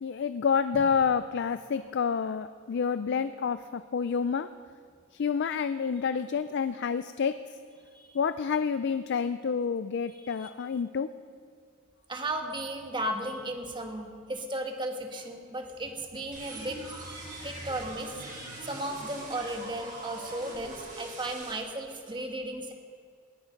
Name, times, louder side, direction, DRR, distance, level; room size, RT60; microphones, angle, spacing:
voice 1, 0.0-4.5 5.1-7.4 8.1-11.1, left 6 dB, 55° left, 12 dB, 0.4 m, -28 dB
voice 2, 10.2-10.5 12.1-16.8 17.4-22.7, right 1 dB, 20° right, 4 dB, 1.4 m, -35 dB
sound 1, 16.3-21.5, right 2 dB, 40° right, 5.3 m, -42 dB
19.0 x 12.0 x 5.2 m, 2.2 s
head